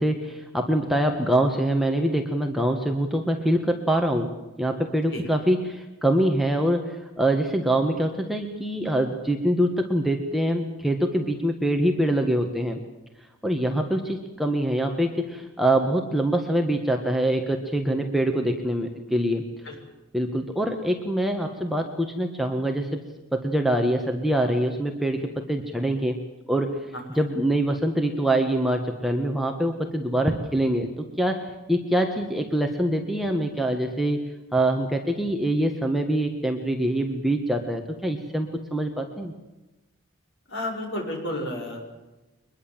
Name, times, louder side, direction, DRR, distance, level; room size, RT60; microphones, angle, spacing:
voice 1, 0.0-4.3 4.6-12.8 13.4-19.5 20.1-22.9 23.3-26.2 26.5-26.7 27.2-30.9 31.2-34.2 34.5-39.3, right 1 dB, ahead, 3 dB, 1.7 m, -24 dB
voice 2, 26.9-27.2 40.5-41.8, left 1 dB, 55° left, 2 dB, 6.8 m, -32 dB
23.5 x 21.0 x 7.6 m, 1.1 s
head